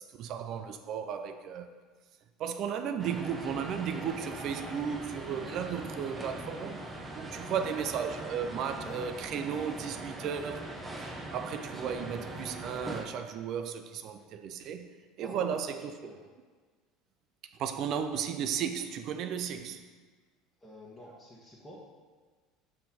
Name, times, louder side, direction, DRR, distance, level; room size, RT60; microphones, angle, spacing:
voice 1, 0.0-1.7 2.4-6.9 7.1-10.7 11.0-16.0 17.6-19.9, right 8 dB, 55° right, 8 dB, 0.4 m, -35 dB
sound 1, 3.0-13.0, right 1 dB, 15° right, 0.8 m, -41 dB
voice 2, 7.2-7.6 15.2-16.2 20.6-21.8, left 1 dB, 15° left, -6 dB, 1.2 m, -49 dB
5.2 x 4.3 x 4.2 m, 1.4 s
hypercardioid pair, 85°, 0 cm